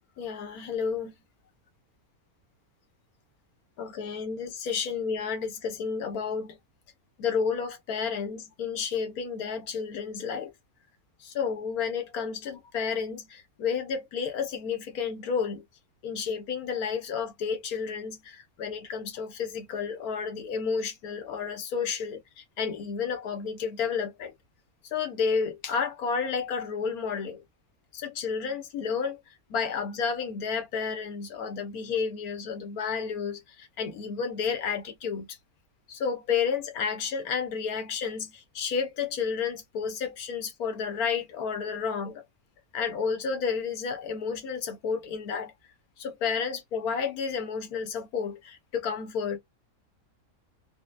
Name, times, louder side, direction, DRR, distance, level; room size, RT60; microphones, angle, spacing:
voice 1, 0.2-1.1 3.8-6.6 7.2-10.5 11.2-15.6 16.0-24.3 24.9-27.4 27.9-29.2 29.5-35.4 35.9-42.2 42.7-45.5 46.0-49.4, left 6 dB, 80° left, 1.3 m, -31 dB
4.1 x 2.0 x 2.5 m
omnidirectional pair, 1.6 m